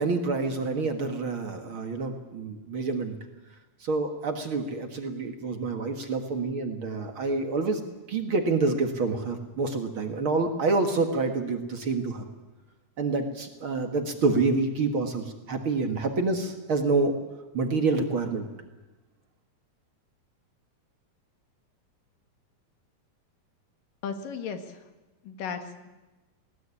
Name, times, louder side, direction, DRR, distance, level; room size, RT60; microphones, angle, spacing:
voice 1, 0.0-3.2 3.8-7.8 8.1-12.2 13.0-17.1 17.5-18.5, right 3 dB, 45° right, 5 dB, 2.2 m, -27 dB
voice 2, 24.0-24.8 25.3-25.9, left 6 dB, 85° left, 7 dB, 3.5 m, -35 dB
20.5 x 18.5 x 10.0 m, 1.1 s
omnidirectional pair, 3.7 m